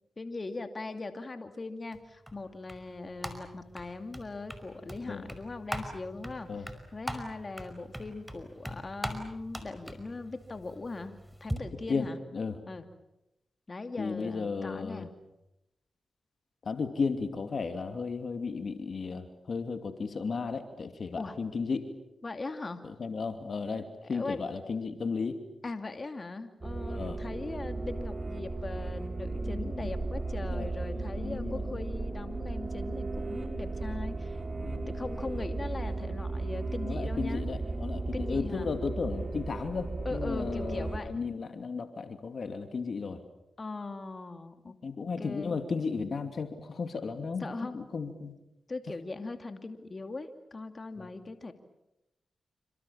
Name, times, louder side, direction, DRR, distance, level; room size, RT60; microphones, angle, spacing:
voice 1, 0.2-12.2 12.7-12.8 13.7-15.1 21.2-21.4 22.2-22.8 24.0-24.4 25.6-34.4 34.7-37.4 38.1-38.7 40.0-41.2 43.6-44.7 45.2-45.6 47.4-47.8 48.7-51.5, left 3 dB, 40° left, 7 dB, 2.6 m, -40 dB
sound 1, 1.9-11.6, equal, 5° right, 5.3 m, -42 dB
voice 2, 11.6-12.1 12.3-12.6 14.0-15.1 16.6-21.9 22.8-25.4 26.9-27.2 29.4-29.9 30.5-30.7 30.9-31.7 34.6-35.0 36.8-43.2 44.8-47.5 47.7-48.3 51.0-51.1, left 4 dB, 65° left, 7 dB, 2.7 m, -34 dB
sound 2, 26.6-41.0, right 3 dB, 40° right, 6.2 m, -35 dB
28.5 x 25.5 x 7.2 m, 0.88 s
supercardioid pair, 45°, 0 cm